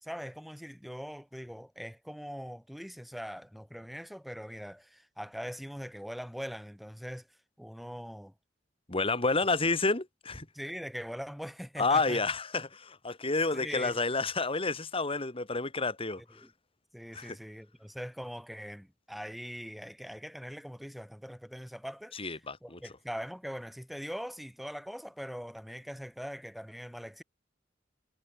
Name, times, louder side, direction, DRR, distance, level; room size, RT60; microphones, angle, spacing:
voice 1, 0.0-7.3 7.6-8.3 10.5-12.2 13.5-14.0 16.3-16.5 16.9-27.2, equal, ahead, 3.5 m, -42 dB
voice 2, 8.9-10.5 11.8-16.4 17.1-17.4 22.1-22.8, left 3 dB, 30° left, 2.5 m, -30 dB
head